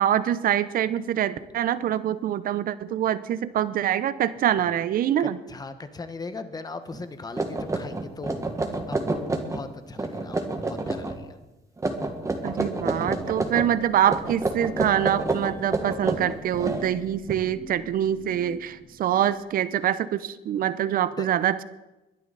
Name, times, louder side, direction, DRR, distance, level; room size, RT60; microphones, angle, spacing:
voice 1, 0.0-5.4 12.4-21.6, right 10 dB, 55° right, 14 dB, 0.8 m, -25 dB
voice 2, 5.2-8.4 8.9-11.4 21.2-21.3, left 3 dB, 25° left, 9 dB, 1.3 m, -39 dB
sound 1, 6.9-7.0 7.4-9.7 9.9-11.2 11.8-13.7 14.1-17.3, right 2 dB, 20° right, 1.7 m, -28 dB
sound 2, 13.0-19.7, left 3 dB, 40° left, 4.0 m, -47 dB
22.0 x 11.0 x 4.1 m, 1.0 s
cardioid pair, 110°, 17 cm